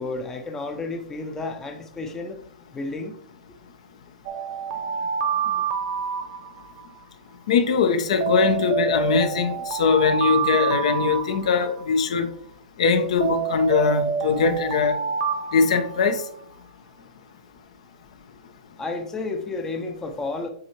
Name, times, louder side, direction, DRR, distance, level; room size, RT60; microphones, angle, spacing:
voice 1, 0.0-2.4 2.7-3.1 18.8-20.5, left 3 dB, 15° left, 4 dB, 0.7 m, -31 dB
Alarm, 4.3-6.9 8.2-11.9 13.2-16.4, right 7 dB, 40° right, 0.9 m, -27 dB
voice 2, 7.5-12.3 12.8-15.0 15.5-16.2, left 5 dB, 65° left, 8 dB, 1.0 m, -21 dB
7.4 x 5.4 x 3.1 m, 0.64 s
hypercardioid pair, 135°, 4 cm